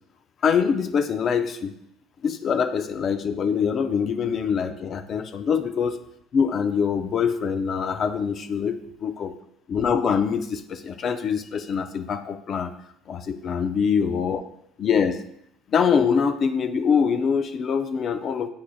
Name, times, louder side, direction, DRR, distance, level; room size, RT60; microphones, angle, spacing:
voice 1, 0.4-1.7 2.2-6.0 6.3-9.3 9.7-12.7 13.1-14.4 14.8-15.2 15.7-18.5, left 6 dB, 35° left, 9 dB, 0.4 m, -24 dB
8.5 x 6.3 x 2.3 m, 0.75 s
cardioid pair, 140°, 0 cm